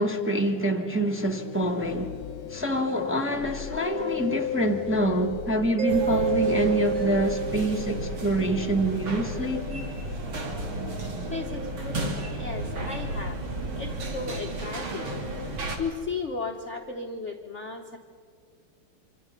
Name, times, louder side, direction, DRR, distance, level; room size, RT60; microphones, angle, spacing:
voice 1, 0.0-2.1 2.5-9.8, right 1 dB, 5° right, 1.3 m, -26 dB
sound 1, 1.1-5.8, left 10 dB, 75° left, 1.6 m, -36 dB
Mallet percussion, 5.8-8.3, right 6 dB, 25° right, 2.1 m, -28 dB
sound 2, 5.9-15.8, right 1 dB, 65° right, 3.2 m, -33 dB
voice 2, 11.3-13.4 13.7-15.1 15.8-18.0, left 4 dB, 45° left, 1.1 m, -35 dB
26.0 x 25.5 x 5.9 m
omnidirectional pair, 2.4 m